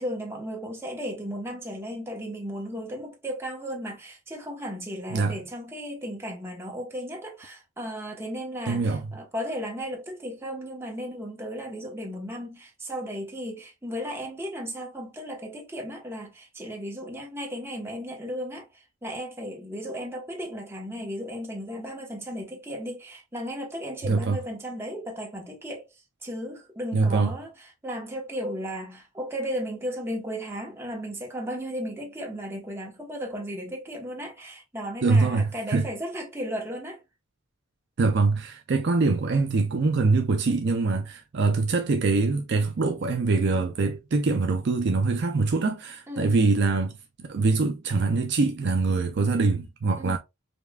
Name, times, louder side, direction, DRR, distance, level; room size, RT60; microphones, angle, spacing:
voice 1, 0.0-25.9 26.2-37.0 46.1-46.3 50.0-50.2, equal, 10° right, 0.9 m, -35 dB
voice 2, 8.7-9.1 24.0-24.4 26.9-27.3 35.0-35.9 38.0-50.2, right 3 dB, 50° right, 0.4 m, -24 dB
5.1 x 2.4 x 2.2 m
head